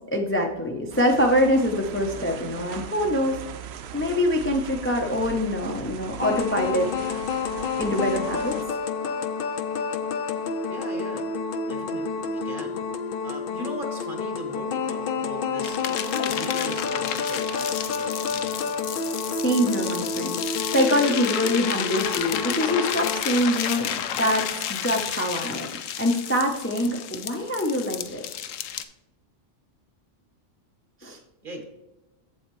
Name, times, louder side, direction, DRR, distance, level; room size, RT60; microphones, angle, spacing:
voice 1, 0.1-3.4 3.9-7.2 7.8-8.6 19.4-20.4 20.7-25.7 26.0-28.2 31.0-31.2, equal, 15° left, 1 dB, 0.5 m, -24 dB
sound 1, 0.9-8.7, right 8 dB, 65° right, 0.7 m, -39 dB
sound 2, 6.2-23.2, left 5 dB, 55° left, 0.7 m, -29 dB
voice 2, 10.7-11.3 11.6-12.8 13.2-18.8 31.4-31.6, right 1 dB, 45° right, 3 dB, 1.4 m, -39 dB
sound 3, 15.6-28.8, left 9 dB, 80° left, 1.0 m, -31 dB
7.8 x 7.7 x 3.1 m, 1.0 s
omnidirectional pair, 1.3 m